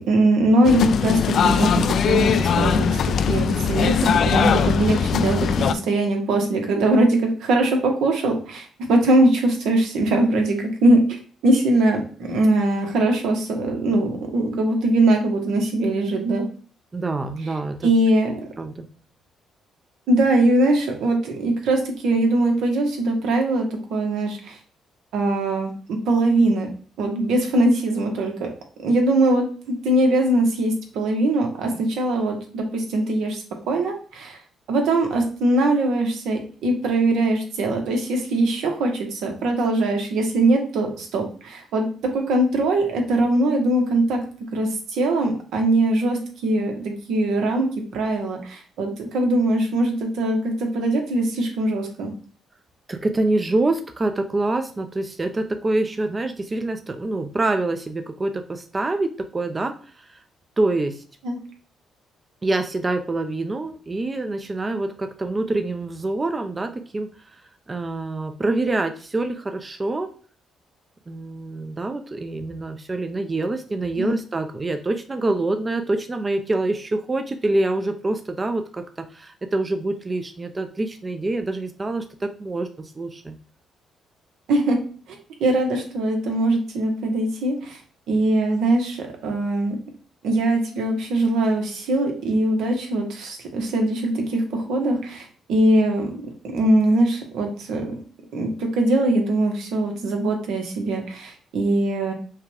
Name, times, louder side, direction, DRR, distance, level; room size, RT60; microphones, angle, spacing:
voice 1, 0.1-2.9 3.3-12.0 12.3-16.4 17.8-18.4 20.1-24.6 25.1-26.7 27.0-28.5 28.8-34.4 34.7-41.9 42.1-44.2 44.5-52.1 61.2-61.4 73.9-74.1 84.5-84.8 85.1-87.8 88.1-89.8 90.2-96.2 96.5-98.0 98.3-102.1, right 1 dB, 85° right, 3 dB, 1.1 m, -21 dB
sound 1, 0.6-5.7, left 7 dB, 65° left, 0.3 m, -20 dB
voice 2, 16.9-17.9 18.6-18.9 52.9-60.2 60.6-61.0 62.4-67.4 67.7-70.1 71.1-83.4, right 2 dB, 25° right, 7 dB, 0.5 m, -26 dB
5.6 x 2.3 x 3.4 m, 0.42 s
cardioid pair, 90°, 0 cm